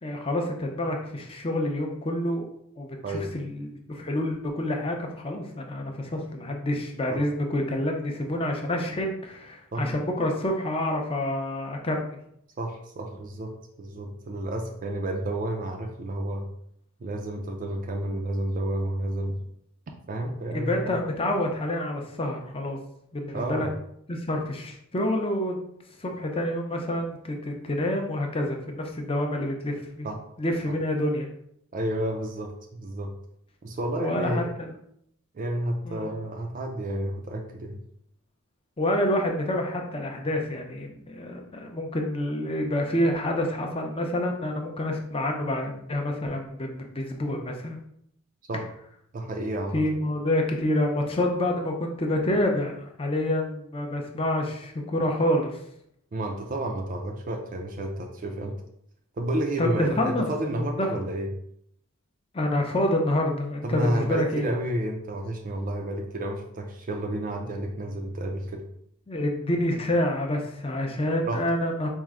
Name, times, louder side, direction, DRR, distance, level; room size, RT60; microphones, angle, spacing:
voice 1, 0.0-2.5 2.8-12.2 20.5-22.8 23.1-23.7 24.1-25.6 26.0-30.1 30.4-31.3 34.0-34.7 35.9-36.1 38.8-47.8 49.7-55.6 59.6-60.9 62.3-64.5 69.1-71.9, left 1 dB, 25° left, 2 dB, 0.5 m, -28 dB
voice 2, 12.6-16.5 17.0-19.4 20.1-21.0 23.3-23.8 30.0-30.2 30.7-30.8 31.7-33.1 33.6-34.5 35.3-37.8 48.5-48.7 49.1-49.8 56.1-58.6 59.2-61.3 63.6-68.6 71.2-71.4, right 1 dB, 35° right, 2 dB, 0.4 m, -31 dB
4.4 x 2.1 x 3.6 m, 0.72 s
head